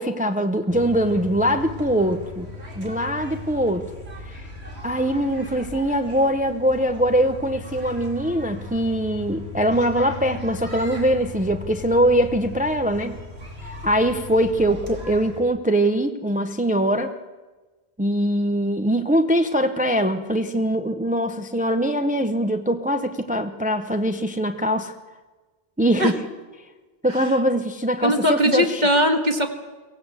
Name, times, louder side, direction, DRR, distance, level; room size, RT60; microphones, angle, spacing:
voice 1, 0.0-2.5 2.8-3.9 4.3-4.4 4.8-13.2 13.6-17.1 18.0-24.9 25.8-26.2 27.0-28.8, right 1 dB, 10° right, 7 dB, 0.8 m, -22 dB
sound 1, 0.7-15.4, left 2 dB, 75° right, 3.3 m, -37 dB
voice 2, 28.0-29.5, equal, 45° right, 5 dB, 2.0 m, -20 dB
23.5 x 16.5 x 8.2 m, 1.3 s
omnidirectional pair, 1.1 m